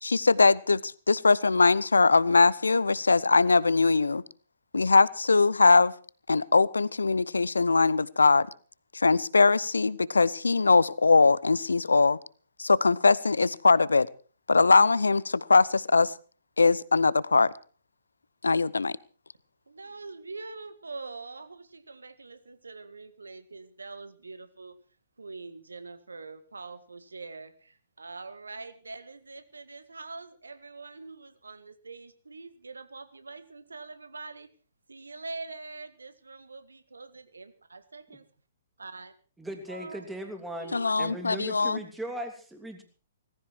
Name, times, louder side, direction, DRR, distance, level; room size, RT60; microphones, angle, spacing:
voice 1, 0.0-4.2 4.7-5.9 6.3-8.5 8.9-12.2 12.6-14.1 14.5-16.1 16.6-17.5 18.4-19.0 40.7-41.8, left 4 dB, 80° left, 22 dB, 0.7 m, -21 dB
voice 2, 19.7-24.8 25.2-34.5 34.9-38.2 38.8-39.1 39.7-40.1 40.6-40.9 41.6-41.8, right 3 dB, 80° right, 12 dB, 1.8 m, -44 dB
voice 3, 39.4-42.8, right 1 dB, 5° right, 4 dB, 3.1 m, -38 dB
18.0 x 15.5 x 4.6 m, 0.39 s
figure-of-eight pair, 120°, 0 cm